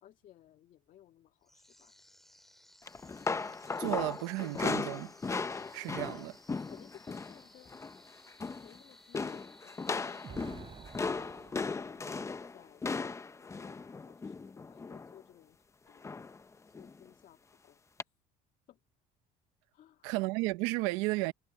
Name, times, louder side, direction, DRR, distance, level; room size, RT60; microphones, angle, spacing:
voice 1, 0.0-1.9 6.6-7.8 8.6-12.8 13.4-15.6 15.9-16.0 16.7-17.4 17.6-17.8 18.7-18.8 19.7-20.1, left 12 dB, 55° left, 2.0 m, -59 dB
sound 1, 1.4-11.7, equal, ahead, 7.3 m, -61 dB
sound 2, 2.9-7.4 7.7-8.0 8.3-8.8 9.1-15.2 16.0-16.4 16.7-16.9 18.0-18.1, left 4 dB, 20° left, 0.9 m, -37 dB
voice 2, 3.8-5.1 5.7-6.3 20.0-21.3, right 22 dB, 90° right, 1.0 m, -33 dB
Explosion, 10.2-12.4, right 7 dB, 35° right, 3.3 m, -50 dB
cardioid pair, 115°, 16 cm